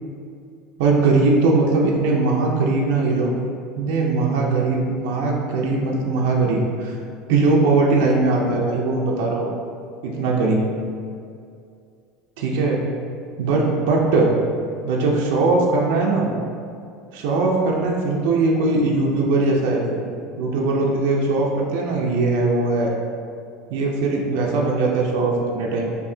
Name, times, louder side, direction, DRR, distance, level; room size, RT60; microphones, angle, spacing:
voice 1, 0.8-3.3 3.8-6.9 7.3-9.5 10.0-10.7 12.4-12.8 13.4-14.3 14.8-16.3 17.1-20.0 20.4-22.9 23.7-25.9, right 3 dB, 65° right, -2 dB, 0.5 m, -20 dB
4.5 x 2.7 x 2.7 m, 2.4 s
cardioid pair, 180°, 0 cm